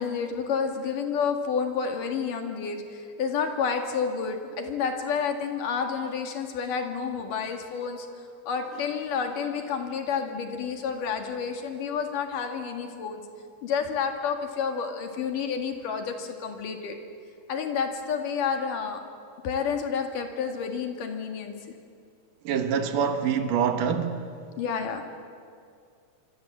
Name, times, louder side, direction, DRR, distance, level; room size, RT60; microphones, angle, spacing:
voice 1, 0.0-8.1 8.5-13.2 13.6-17.0 17.5-19.0 19.4-21.5 24.6-25.0, left 6 dB, 80° left, 3.6 m, -30 dB
voice 2, 22.4-24.3, right 7 dB, 75° right, 3.0 m, -25 dB
25.5 x 25.5 x 7.5 m
omnidirectional pair, 3.7 m